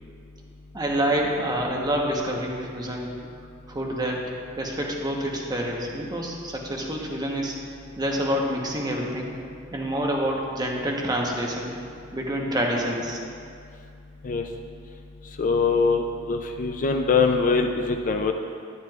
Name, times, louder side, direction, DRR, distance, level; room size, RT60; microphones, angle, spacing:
voice 1, 0.7-3.1 3.7-4.2 4.6-7.6 8.0-9.3 9.7-11.7 12.1-13.2, right 1 dB, 20° right, -1 dB, 1.0 m, -27 dB
voice 2, 15.4-18.3, left 4 dB, 40° left, 4 dB, 0.4 m, -23 dB
10.5 x 10.5 x 2.4 m, 2.4 s
head